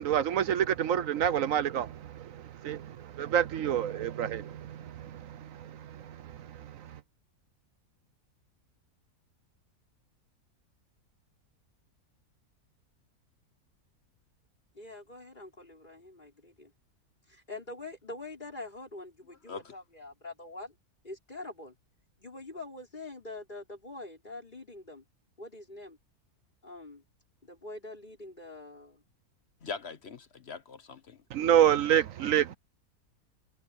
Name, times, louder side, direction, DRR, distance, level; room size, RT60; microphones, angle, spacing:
voice 1, 0.0-2.3 2.6-5.5 5.9-6.0 31.3-32.6, right 10 dB, 65° right, 1.0 m, -27 dB
voice 2, 14.7-16.7 17.3-20.7 21.0-21.7 22.2-25.0 25.4-26.0 26.6-27.0 27.4-29.0, left 2 dB, 30° left, 5.7 m, -44 dB
voice 3, 29.6-31.2, left 5 dB, 50° left, 1.1 m, -41 dB
omnidirectional pair, 1.6 m